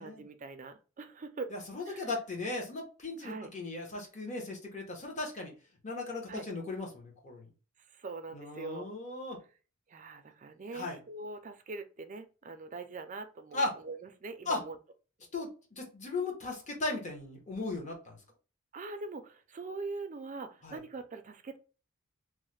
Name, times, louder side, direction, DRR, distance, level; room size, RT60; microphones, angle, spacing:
voice 1, 0.0-1.5 1.8-2.1 3.2-3.5 6.3-6.5 7.9-8.8 9.9-14.8 18.7-21.6, right 3 dB, 35° right, 8 dB, 0.4 m, -42 dB
voice 2, 1.5-5.5 5.8-7.5 8.3-9.4 10.7-11.0 13.5-13.7 14.5-14.6 15.3-18.2 20.6-20.8, left 2 dB, 35° left, 0 dB, 0.9 m, -37 dB
3.1 x 2.1 x 3.1 m, 0.35 s
head